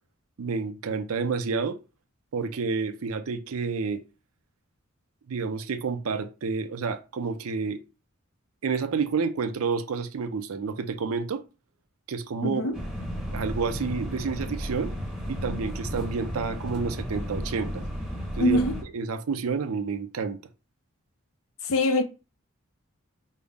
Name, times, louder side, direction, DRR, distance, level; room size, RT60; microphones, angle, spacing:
voice 1, 0.4-1.8 2.3-4.0 5.3-7.8 8.6-11.4 12.1-12.6 13.3-14.9 15.3-17.8 18.4-18.6 18.9-20.4, right 5 dB, 90° right, 0.5 m, -29 dB
voice 2, 12.4-12.8 18.4-18.8 21.6-22.0, left 1 dB, 85° left, 0.6 m, -23 dB
sound 1, 12.7-18.8, equal, 5° right, 0.9 m, -33 dB
5.3 x 2.0 x 3.4 m
head